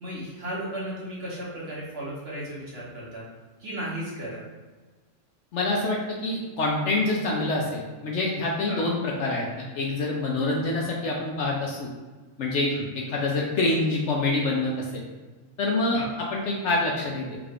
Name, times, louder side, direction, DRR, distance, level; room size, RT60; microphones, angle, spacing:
voice 1, 0.0-3.3 3.6-4.4 8.7-8.9 12.7-12.9 15.9-16.1, equal, 50° right, -6 dB, 1.0 m, -35 dB
voice 2, 5.5-9.4 9.7-11.9 12.4-15.0 15.6-16.0 16.3-17.4, left 2 dB, 65° left, -2 dB, 0.8 m, -26 dB
3.7 x 2.4 x 3.4 m, 1.3 s
omnidirectional pair, 1.5 m